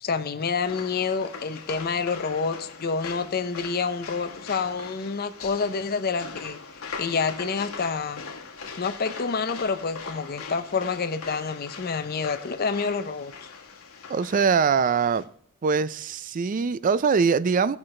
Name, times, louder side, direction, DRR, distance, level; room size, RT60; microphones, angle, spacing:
voice 1, 0.0-6.6 7.0-8.2 8.8-13.5, left 5 dB, 45° left, 0.6 m, -28 dB
sound 1, 0.6-15.2, left 4 dB, 80° left, 1.3 m, -41 dB
voice 2, 14.1-15.2 15.6-17.8, right 5 dB, 40° right, 0.4 m, -22 dB
17.0 x 5.9 x 3.2 m
head